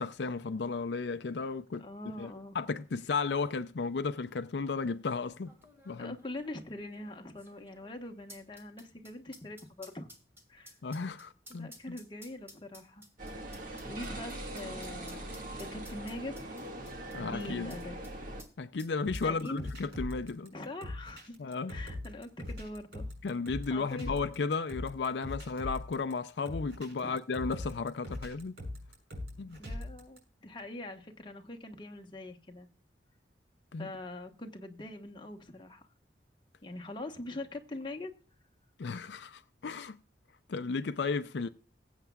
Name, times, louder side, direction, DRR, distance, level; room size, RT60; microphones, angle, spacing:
voice 1, 0.0-1.9 2.2-5.5 5.9-6.2 10.8-11.7 17.1-17.7 18.6-20.5 21.4-21.7 23.2-28.6 29.4-29.6 33.7-33.9 38.8-40.0 40.5-41.5, left 4 dB, 75° left, 0.5 m, -34 dB
voice 2, 1.8-2.6 6.0-10.1 10.5-10.7 11.5-13.0 13.8-16.4 17.1-18.0 19.2-19.7 20.5-21.4 21.7-23.1 23.7-24.1 27.0-27.2 29.6-32.7 33.8-35.9 36.6-38.1, left 2 dB, 25° left, 1.2 m, -43 dB
sound 1, 2.9-3.0 3.2-3.6 4.4-4.5 5.5-18.1 18.4-18.5 18.8-20.0 20.3-20.4, equal, 15° right, 2.3 m, -55 dB
sound 2, 13.2-18.4, right 1 dB, 50° right, 1.9 m, -41 dB
sound 3, 19.0-30.2, left 1 dB, 70° right, 6.6 m, -41 dB
20.5 x 8.1 x 2.3 m
head